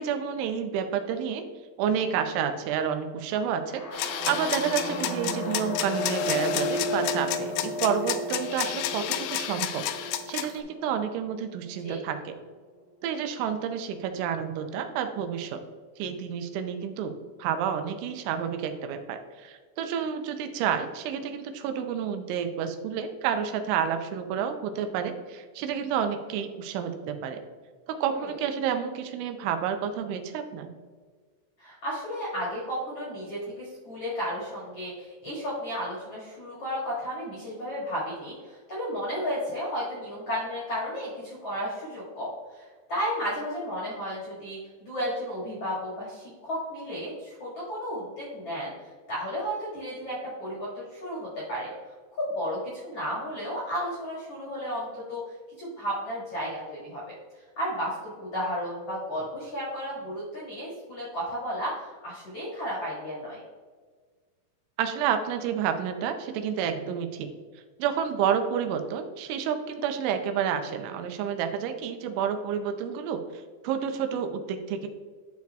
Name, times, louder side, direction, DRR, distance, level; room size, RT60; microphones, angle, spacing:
voice 1, 0.0-1.4 1.8-12.4 13.0-15.6 16.0-27.4 27.9-30.7 64.8-67.3 67.8-74.9, right 8 dB, 85° right, 7 dB, 3.1 m, -30 dB
sound 1, 3.7-11.5, left 1 dB, 65° left, 2.6 m, -34 dB
sound 2, 3.9-10.6, left 12 dB, 85° left, 2.7 m, -31 dB
voice 2, 31.6-48.7 49.1-51.7 52.2-55.2 55.6-57.0 57.6-61.7 62.0-63.4, equal, 50° left, -8 dB, 1.9 m, -33 dB
12.0 x 4.6 x 2.3 m, 1.5 s
omnidirectional pair, 5.4 m